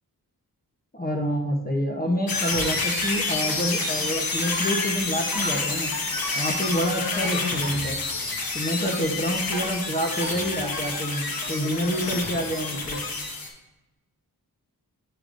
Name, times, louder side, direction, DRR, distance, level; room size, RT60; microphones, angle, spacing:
voice 1, 0.9-5.9 6.4-8.0 8.5-11.2 11.5-13.0, equal, 25° left, 1 dB, 0.8 m, -27 dB
sound 1, 2.3-13.5, left 3 dB, 70° left, 1.0 m, -28 dB
8.7 x 5.0 x 2.5 m, 1.0 s
wide cardioid pair, 85°, 37 cm